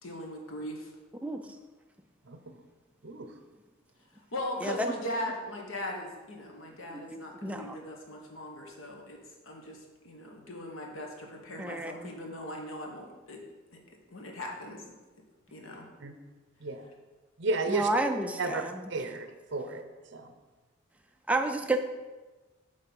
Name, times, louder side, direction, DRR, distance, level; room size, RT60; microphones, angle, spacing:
voice 1, 0.0-0.9 4.3-9.2 9.4-9.8 10.0-13.4 13.7-13.8 14.1-14.9 15.5-15.9, left 1 dB, 85° left, 1 dB, 1.2 m, -39 dB
voice 2, 2.3-2.6 3.0-3.3 16.0-16.2 16.6-16.8 17.4-17.9 18.4-18.6 18.9-20.3, right 3 dB, 60° right, 7 dB, 0.7 m, -33 dB
voice 3, 4.6-4.9 6.9-7.8 11.6-12.1 17.7-18.8 21.3-21.8, right 2 dB, 5° right, 4 dB, 0.4 m, -31 dB
7.7 x 3.8 x 5.4 m, 1.2 s
head